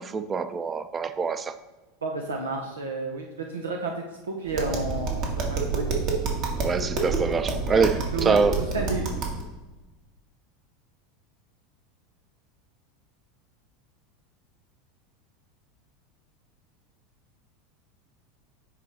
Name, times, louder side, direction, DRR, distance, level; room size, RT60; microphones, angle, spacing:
voice 1, 0.0-1.5 6.6-8.6, right 4 dB, 25° right, 11 dB, 0.6 m, -25 dB
voice 2, 2.0-5.9 7.7-7.9 8.1-8.4 8.7-9.1, right 3 dB, 90° right, 1 dB, 0.8 m, -31 dB
Tap, 4.5-9.4, right 4 dB, 55° right, 1.9 m, -28 dB
9.8 x 3.8 x 4.3 m, 1.2 s
hypercardioid pair, 90°, 0 cm